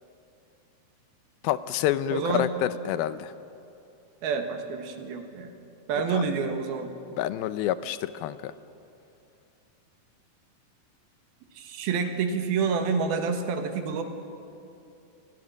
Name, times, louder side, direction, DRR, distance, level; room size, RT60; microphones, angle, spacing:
voice 1, 1.4-3.3 6.1-6.2 7.2-8.5, left 12 dB, 80° left, 14 dB, 2.5 m, -28 dB
voice 2, 2.1-2.5 4.2-5.5 5.9-6.9 11.6-14.0, right 5 dB, 80° right, 6 dB, 3.4 m, -28 dB
29.0 x 20.5 x 6.4 m, 2.7 s
omnidirectional pair, 4.3 m